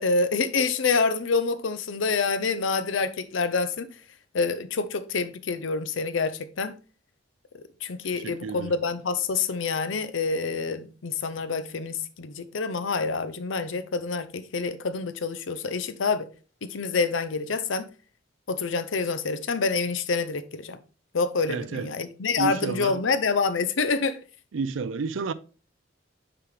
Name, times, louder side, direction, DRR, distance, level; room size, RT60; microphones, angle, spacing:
voice 1, 0.0-3.9 4.3-6.7 7.8-16.3 16.6-17.9 18.5-20.8 21.1-24.2, left 4 dB, 80° left, 0.6 m, -27 dB
voice 2, 8.1-8.7 21.5-21.9 22.4-23.0 24.5-25.3, right 5 dB, 85° right, 0.5 m, -31 dB
5.8 x 4.9 x 3.3 m
head